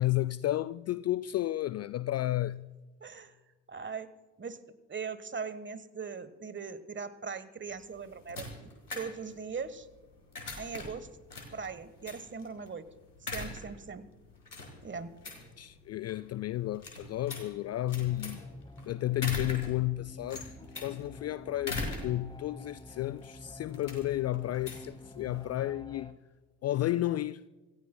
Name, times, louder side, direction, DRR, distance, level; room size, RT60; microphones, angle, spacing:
voice 1, 0.0-2.7 15.6-18.5 18.8-20.5 20.8-26.2 26.6-27.4, left 15 dB, 35° left, 0.4 m, -32 dB
voice 2, 3.0-3.3 3.7-4.1 4.4-4.6 4.9-8.5 8.9-9.9 10.6-11.1 11.5-12.8 13.2-14.1 14.8-15.1, right 5 dB, 25° right, 1.3 m, -40 dB
sound 1, 7.7-25.6, left 2 dB, 90° left, 1.8 m, -43 dB
sound 2, 17.8-26.1, left 1 dB, 10° left, 1.6 m, -49 dB
26.5 x 15.0 x 2.2 m
figure-of-eight pair, 45°, 45 cm